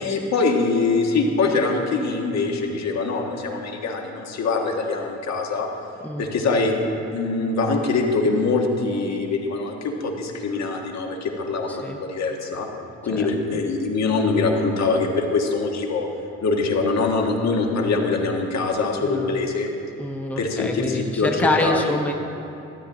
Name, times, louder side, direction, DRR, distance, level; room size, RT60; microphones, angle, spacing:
voice 1, 0.0-5.7 6.2-6.7 7.1-12.7 13.0-16.1 16.4-19.7 20.4-22.0, left 3 dB, 60° left, 1 dB, 1.5 m, -23 dB
voice 2, 11.7-12.0 13.1-13.6 19.0-19.4 20.0-22.1, left 2 dB, 5° left, 2 dB, 0.9 m, -26 dB
13.0 x 9.1 x 3.9 m, 2.9 s
cardioid pair, 90°, 30 cm